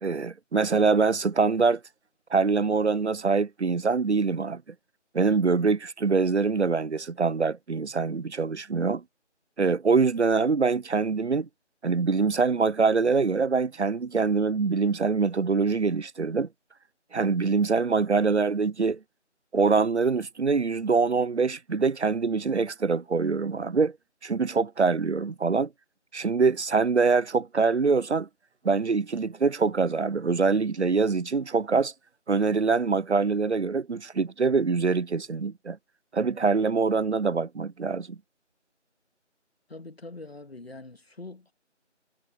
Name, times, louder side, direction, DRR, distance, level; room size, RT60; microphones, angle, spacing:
voice 1, 0.0-1.8 2.3-4.6 5.1-9.0 9.6-11.5 11.8-16.5 17.1-19.0 19.5-24.0 24.2-25.7 26.1-28.3 28.6-31.9 32.3-35.8 36.1-38.2, right 4 dB, 65° right, 0.7 m, -24 dB
voice 2, 39.7-41.5, left 2 dB, 55° left, 2.1 m, -43 dB
figure-of-eight pair, 170°, 36 cm